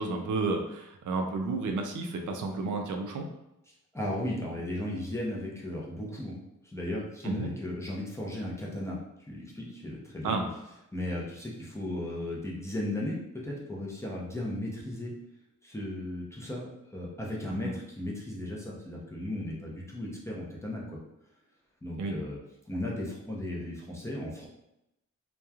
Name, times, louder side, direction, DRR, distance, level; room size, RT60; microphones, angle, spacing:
voice 1, 0.0-3.3 7.2-7.5 10.2-10.5 17.6-17.7 22.0-22.2, right 3 dB, 70° right, 3 dB, 0.5 m, -31 dB
voice 2, 3.9-6.4 6.6-10.4 10.9-15.1 15.6-21.0 21.8-22.4 22.7-24.5, left 1 dB, 10° left, -4 dB, 0.5 m, -36 dB
2.9 x 2.2 x 2.3 m, 0.87 s
wide cardioid pair, 135°, 32 cm